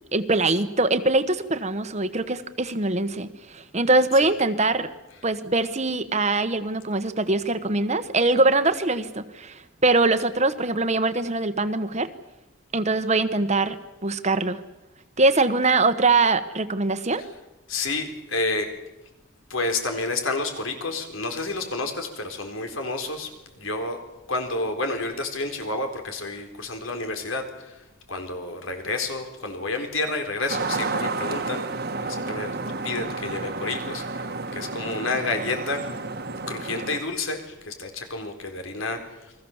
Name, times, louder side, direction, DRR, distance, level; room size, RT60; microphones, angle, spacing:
voice 1, 0.1-4.9 5.2-12.1 12.7-13.8 14.0-14.6 15.2-17.2, right 2 dB, 35° right, 11 dB, 1.3 m, -22 dB
voice 2, 17.7-18.8 19.5-24.0 24.3-31.7 32.0-32.6 32.8-35.9 36.5-39.3, left 3 dB, 80° left, 5 dB, 4.2 m, -30 dB
sound 1, 30.5-37.0, right 3 dB, 50° right, 1.6 m, -31 dB
29.5 x 22.0 x 7.3 m, 0.97 s
head